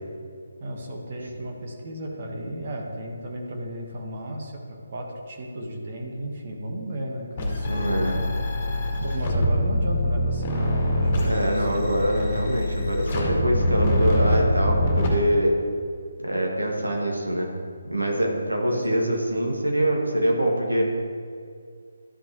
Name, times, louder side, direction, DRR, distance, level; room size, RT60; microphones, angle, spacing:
voice 1, 0.6-8.2 9.0-12.0 18.7-19.1, right 1 dB, 45° right, 0 dB, 1.4 m, -34 dB
sound 1, 7.4-15.1, left 1 dB, 30° left, 1.8 m, -24 dB
voice 2, 7.6-8.2 11.2-15.5 16.2-17.5 17.8-20.9, equal, 85° right, -1 dB, 1.9 m, -24 dB
12.5 x 5.9 x 3.1 m, 2.2 s
figure-of-eight pair, 150°, 0 cm